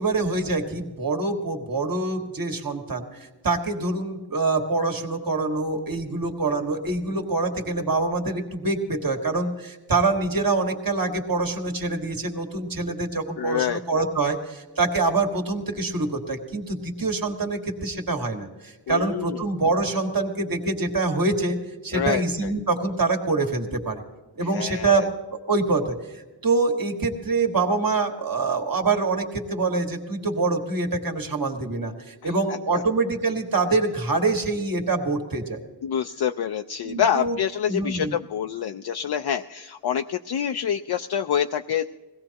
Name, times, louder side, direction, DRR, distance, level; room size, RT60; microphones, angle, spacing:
voice 1, 0.0-21.6 21.8-24.0 24.3-25.1 25.5-26.0 26.4-35.6 36.8-37.4 37.7-38.1, right 3 dB, 55° right, 3 dB, 1.8 m, -25 dB
voice 2, 13.4-14.1 18.9-19.4 21.9-22.5 24.5-25.1 32.2-32.3 32.7-32.8 35.8-41.8, left 8 dB, 65° left, 6 dB, 0.5 m, -27 dB
21.5 x 17.0 x 2.9 m, 1.2 s
cardioid pair, 55°, 41 cm